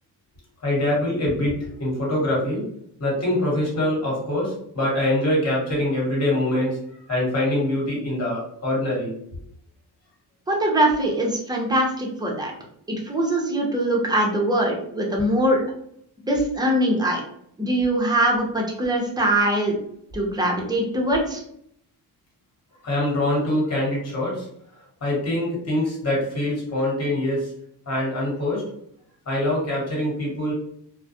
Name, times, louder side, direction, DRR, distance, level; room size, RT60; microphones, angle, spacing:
voice 1, 0.6-2.7 3.0-6.8 7.1-9.2 22.8-24.5 25.0-27.5 27.9-28.7 29.3-30.5, left 1 dB, 35° left, -4 dB, 1.3 m, -24 dB
voice 2, 10.5-12.5 12.9-15.7 16.2-17.2 17.6-19.8 20.1-21.4, right 1 dB, 10° right, -1 dB, 0.6 m, -22 dB
2.3 x 2.1 x 2.7 m, 0.69 s
cardioid pair, 105°, 41 cm